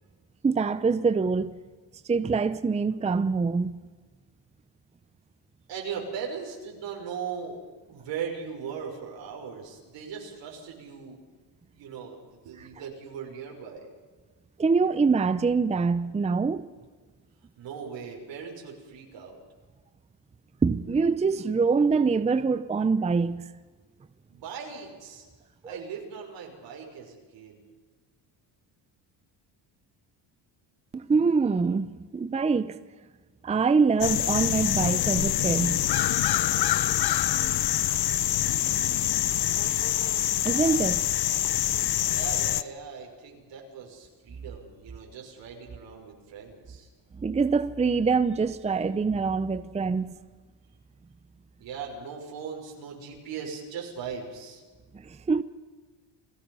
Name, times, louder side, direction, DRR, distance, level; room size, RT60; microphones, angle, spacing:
voice 1, 0.4-1.5 2.1-3.7 14.6-16.7 20.6-23.5 25.6-25.8 30.9-32.8 33.4-35.8 40.4-41.1 47.2-50.2 55.0-55.4, right 4 dB, 15° right, 0.6 m, -24 dB
voice 2, 5.7-7.6 7.9-11.2 11.7-13.9 17.6-19.4 24.3-25.2 25.6-27.6 42.0-46.9 51.6-54.6, right 6 dB, 75° right, 5.8 m, -39 dB
sound 1, 34.0-42.6, left 13 dB, 55° left, 0.9 m, -25 dB
29.0 x 18.0 x 5.6 m
cardioid pair, 135°, 44 cm